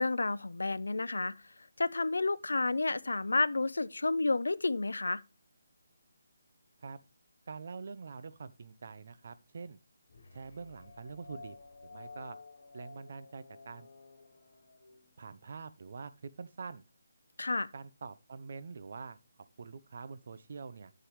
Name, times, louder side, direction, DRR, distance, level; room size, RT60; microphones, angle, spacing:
voice 1, 0.0-1.3 1.8-5.2 17.4-17.7, left 3 dB, 85° left, 0.5 m, -30 dB
voice 2, 7.5-9.8 10.3-11.6 11.8-12.4 12.7-13.9 15.2-16.1 16.4-16.8 17.7-19.2 19.6-20.9, right 5 dB, 50° right, 0.7 m, -45 dB
sound 1, 10.1-15.6, left 3 dB, 65° left, 2.8 m, -53 dB
10.0 x 6.9 x 3.1 m
hypercardioid pair, 165°, 0 cm